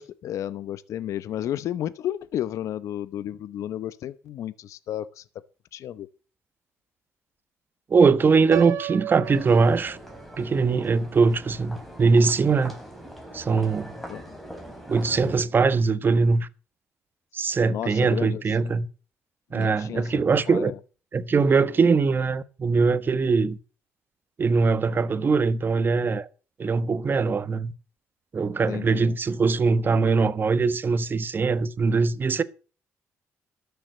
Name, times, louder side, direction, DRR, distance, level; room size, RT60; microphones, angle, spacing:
voice 1, 0.0-5.2 5.7-6.1 14.1-14.2 17.7-18.7 19.5-20.8 28.7-29.2, left 11 dB, 70° left, 0.8 m, -33 dB
voice 2, 7.9-10.0 10.4-12.7 13.3-13.9 14.9-16.5 17.3-18.9 19.5-20.7 21.1-23.6 24.4-26.3 26.6-27.7 28.3-32.4, right 4 dB, 40° right, 1.1 m, -22 dB
Piano, 8.5-10.5, right 13 dB, 85° right, 1.0 m, -34 dB
sound 1, 9.2-15.4, equal, ahead, 4.1 m, -42 dB
13.0 x 7.0 x 8.0 m
cardioid pair, 85°, 5 cm